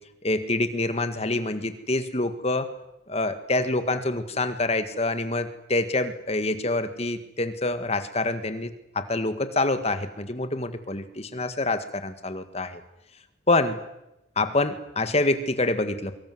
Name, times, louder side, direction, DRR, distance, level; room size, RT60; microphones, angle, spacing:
voice 1, 0.2-2.7 3.1-8.7 9.0-12.8 13.5-13.8 14.4-16.2, left 2 dB, 35° left, 10 dB, 1.8 m, -26 dB
24.0 x 24.0 x 7.9 m, 0.88 s
head